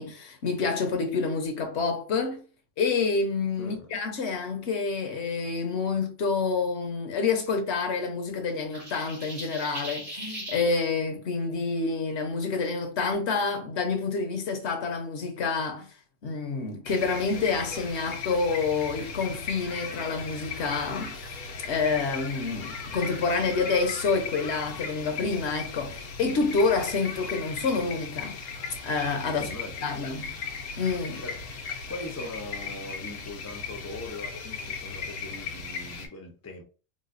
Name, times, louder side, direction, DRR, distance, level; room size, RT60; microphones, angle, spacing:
voice 1, 0.0-2.4 2.8-15.9 16.2-28.4 28.8-29.5 29.8-30.3 30.8-31.2, left 4 dB, 65° left, 0.9 m, -28 dB
voice 2, 3.6-3.9 29.3-29.9 31.2-31.3 31.9-36.6, left 2 dB, 20° left, 0.4 m, -40 dB
sound 1, 8.7-10.7, right 1 dB, 85° right, 1.8 m, -38 dB
sound 2, 16.8-36.1, left 5 dB, 90° left, 1.1 m, -37 dB
3.9 x 2.2 x 2.5 m
omnidirectional pair, 1.3 m